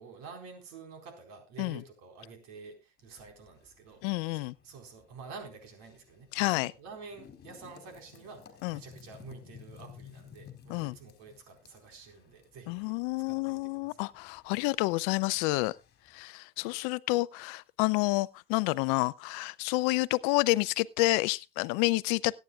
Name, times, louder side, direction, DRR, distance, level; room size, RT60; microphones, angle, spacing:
voice 1, 0.0-14.1, right 4 dB, 60° right, 4.3 m, -49 dB
sound 1, 3.0-16.2, left 8 dB, 35° left, 3.0 m, -56 dB
voice 2, 4.0-4.5 6.3-6.7 8.6-8.8 10.7-10.9 12.7-15.7 16.1-22.3, left 22 dB, 65° left, 0.5 m, -29 dB
22.5 x 9.4 x 2.4 m
hypercardioid pair, 90°, 31 cm